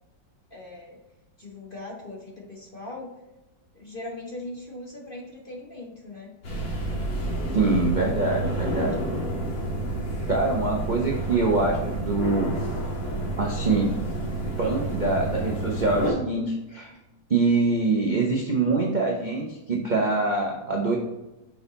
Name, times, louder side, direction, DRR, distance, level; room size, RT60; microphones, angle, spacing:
voice 1, 0.5-1.0 1.4-3.1 3.7-6.3, left 2 dB, 40° left, -2 dB, 0.8 m, -39 dB
Room Tone Centro Cultura Galapagar, 6.4-16.1, right 1 dB, 80° left, 2.4 m, -29 dB
voice 2, 7.5-8.9 10.3-12.6 13.4-14.0 14.6-16.9 17.3-21.0, right 3 dB, 50° right, -1 dB, 0.5 m, -24 dB
6.3 x 4.2 x 4.0 m, 1.0 s
omnidirectional pair, 2.1 m